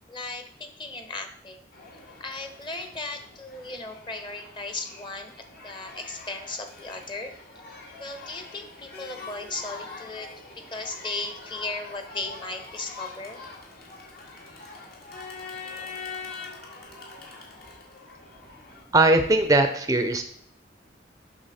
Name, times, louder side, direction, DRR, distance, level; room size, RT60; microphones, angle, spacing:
voice 1, 0.1-1.6 2.2-5.3 5.6-7.3 8.0-13.4, left 3 dB, 30° left, 7 dB, 1.0 m, -36 dB
Crowd, 1.7-18.8, left 4 dB, 60° left, 2.0 m, -43 dB
voice 2, 18.9-20.2, right 2 dB, 20° right, 7 dB, 0.5 m, -20 dB
7.9 x 6.1 x 4.2 m, 0.67 s
head